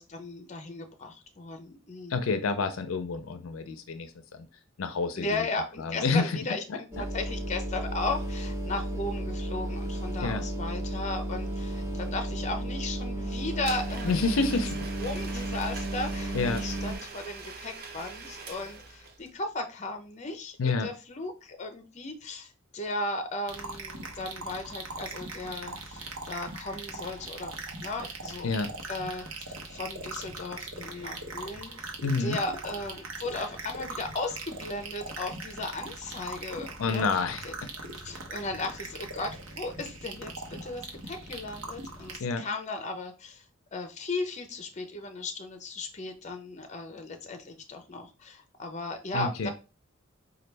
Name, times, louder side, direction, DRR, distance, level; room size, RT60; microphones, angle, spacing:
voice 1, 0.0-2.2 5.2-14.2 14.5-14.6 15.0-27.5 27.8-28.5 28.9-31.9 32.2-37.1 37.4-37.5 38.0-43.4 43.7-49.5, left 2 dB, 35° left, 6 dB, 0.6 m, -36 dB
voice 2, 2.1-4.4 4.8-5.3 5.8-6.3 6.7-6.8 10.2-10.4 14.0-14.8 16.3-16.6 20.6-20.9 28.4-28.7 32.0-32.4 36.8-37.4 42.2-42.4 49.1-49.5, left 4 dB, 85° left, 9 dB, 0.5 m, -28 dB
sound 1, 6.9-17.0, right 1 dB, 15° right, 0.9 m, -33 dB
Domestic sounds home sounds, 13.6-19.3, right 4 dB, 50° right, 0.7 m, -43 dB
sound 2, 23.5-42.2, right 3 dB, 90° right, 0.8 m, -41 dB
4.3 x 2.3 x 3.2 m, 0.31 s
head